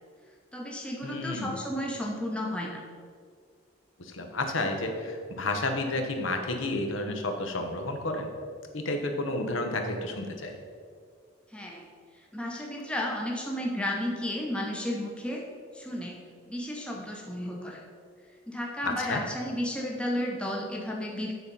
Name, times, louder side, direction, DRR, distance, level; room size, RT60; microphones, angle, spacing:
voice 1, 0.5-2.8 11.5-11.9 12.3-15.4 15.7-16.2 16.5-17.8 18.5-21.3, left 1 dB, 5° left, -1 dB, 0.7 m, -33 dB
voice 2, 1.0-1.5 4.0-8.3 8.7-10.6 18.8-19.2, left 2 dB, 85° left, 4 dB, 1.0 m, -31 dB
9.7 x 4.2 x 5.3 m, 2.1 s
head